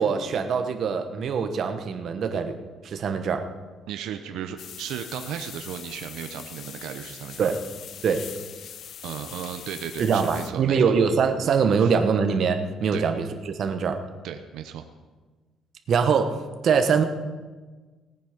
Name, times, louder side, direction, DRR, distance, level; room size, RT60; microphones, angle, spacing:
voice 1, 0.0-2.5 2.8-3.4 7.4-7.6 8.0-8.2 10.0-14.0 15.9-16.3 16.6-17.0, right 6 dB, 50° right, 7 dB, 1.1 m, -23 dB
voice 2, 3.9-7.5 9.0-10.9 11.8-11.9 12.9-13.1 14.2-14.8, right 9 dB, 85° right, 7 dB, 0.8 m, -35 dB
sound 1, 4.6-10.5, left 8 dB, 55° left, 0.7 m, -42 dB
18.0 x 9.2 x 5.1 m, 1.3 s
cardioid pair, 140°, 0 cm